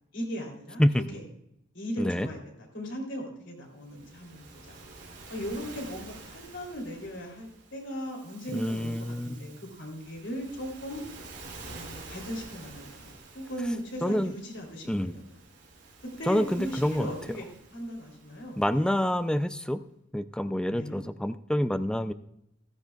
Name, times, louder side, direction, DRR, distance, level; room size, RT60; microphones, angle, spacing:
voice 1, 0.1-1.2 1.7-2.4 2.7-4.8 5.3-11.0 11.7-15.2 16.0-18.9 20.7-21.0, equal, 70° left, 0 dB, 3.1 m, -38 dB
voice 2, 2.0-2.3 8.5-9.5 14.0-14.3 14.9-15.1 16.3-17.1 18.6-19.8 20.1-22.1, equal, 5° left, 12 dB, 0.4 m, -27 dB
Waves surf, 3.8-19.3, right 3 dB, 60° right, 3.1 m, -49 dB
15.0 x 13.5 x 2.3 m, 0.79 s
head